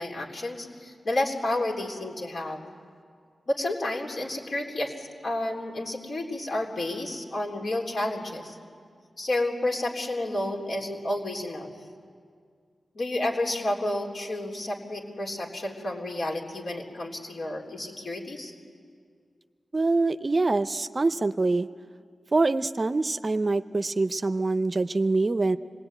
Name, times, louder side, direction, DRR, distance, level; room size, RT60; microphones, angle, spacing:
voice 1, 0.0-2.6 3.5-8.6 9.2-11.7 12.9-18.5, left 1 dB, 65° left, 0 dB, 3.8 m, -30 dB
voice 2, 19.7-21.7 22.3-25.6, right 3 dB, 40° right, 11 dB, 0.6 m, -25 dB
26.0 x 19.5 x 9.0 m, 2.1 s
wide cardioid pair, 80°, 0 cm